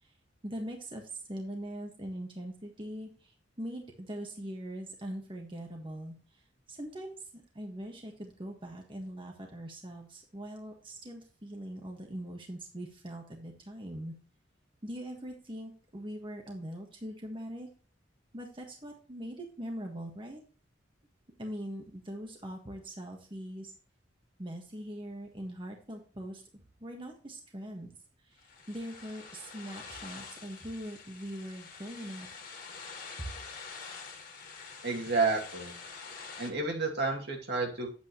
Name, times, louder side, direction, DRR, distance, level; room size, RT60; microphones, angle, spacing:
voice 1, 0.4-6.1 6.7-7.2 7.5-14.1 14.8-17.7 18.3-20.4 21.4-23.7 24.4-26.4 26.8-27.9 28.3-32.3 33.2-33.3, equal, 30° right, 1 dB, 1.5 m, -41 dB
sound 1, 28.4-36.5, left 5 dB, 50° left, 2.2 m, -46 dB
voice 2, 34.8-35.7 36.4-37.9, right 3 dB, 60° right, 1 dB, 2.3 m, -30 dB
8.9 x 8.4 x 3.0 m, 0.41 s
head